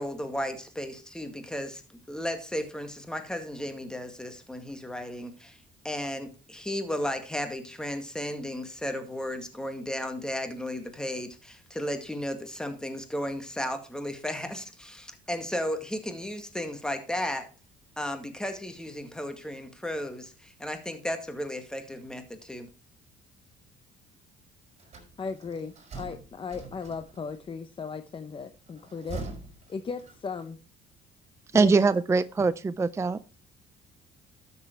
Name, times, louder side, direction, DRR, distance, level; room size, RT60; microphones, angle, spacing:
voice 1, 0.0-5.6 5.8-17.5 18.0-22.7, equal, 5° left, 2.0 m, -34 dB
sound 1, 24.8-27.4 28.7-30.5, right 4 dB, 40° right, 5.6 m, -43 dB
voice 2, 25.2-29.2 29.7-30.6 31.5-31.7, left 5 dB, 30° left, 0.8 m, -36 dB
voice 3, 31.5-33.2, right 4 dB, 15° right, 0.5 m, -23 dB
12.5 x 7.1 x 4.5 m
cardioid pair, 110°, 17 cm